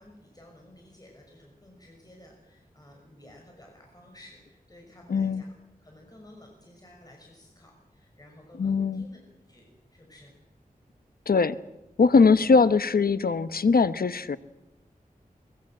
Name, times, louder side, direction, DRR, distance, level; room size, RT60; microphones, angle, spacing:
voice 1, 0.0-5.5 5.8-9.2 9.5-9.6 9.9-10.3 12.3-12.5, left 1 dB, 25° left, 0 dB, 6.0 m, -53 dB
voice 2, 5.1-5.4 8.6-9.0 11.3-11.6 12.0-14.4, left 4 dB, 80° left, 13 dB, 0.9 m, -21 dB
23.0 x 22.0 x 7.6 m, 0.94 s
wide cardioid pair, 80°, 15 cm